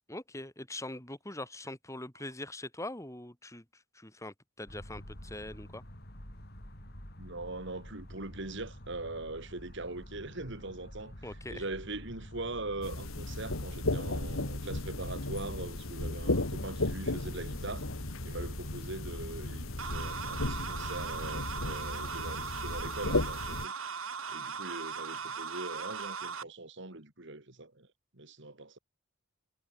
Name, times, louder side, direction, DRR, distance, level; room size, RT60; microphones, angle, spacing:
voice 1, 0.1-5.8 11.2-11.6, left 1 dB, 15° left, 4.9 m, -43 dB
sound 1, 4.7-22.0, equal, 50° left, 7.2 m, -48 dB
voice 2, 7.2-17.9 18.2-24.0 24.3-27.9 28.1-28.8, right 2 dB, 60° right, 2.9 m, -41 dB
sound 2, 12.8-23.7, left 2 dB, 90° left, 2.0 m, -35 dB
sound 3, 19.8-26.4, right 5 dB, 90° right, 3.3 m, -39 dB
head